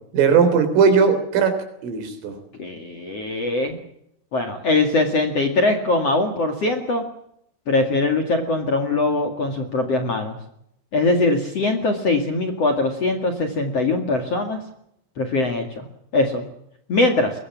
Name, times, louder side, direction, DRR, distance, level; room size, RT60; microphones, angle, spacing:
voice 1, 0.1-2.4, right 6 dB, 85° right, 9 dB, 6.2 m, -18 dB
voice 2, 2.6-3.7 4.3-7.0 7.7-10.4 10.9-14.6 15.2-15.9 16.1-16.4 16.9-17.3, left 2 dB, 45° left, 5 dB, 2.3 m, -21 dB
22.0 x 21.5 x 7.3 m, 0.75 s
omnidirectional pair, 5.6 m